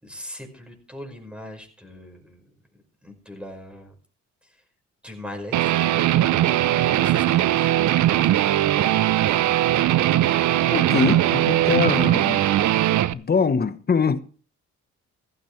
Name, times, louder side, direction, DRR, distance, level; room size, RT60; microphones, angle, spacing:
voice 1, 0.0-3.9 4.4-4.6 5.0-7.8 8.1-8.4, left 1 dB, 5° right, 5.2 m, -41 dB
Guitar, 5.5-13.1, right 13 dB, 70° right, 0.7 m, -20 dB
voice 2, 10.7-12.5 13.1-14.2, left 5 dB, 30° left, 1.2 m, -23 dB
15.0 x 13.5 x 3.3 m
cardioid pair, 90°, 30 cm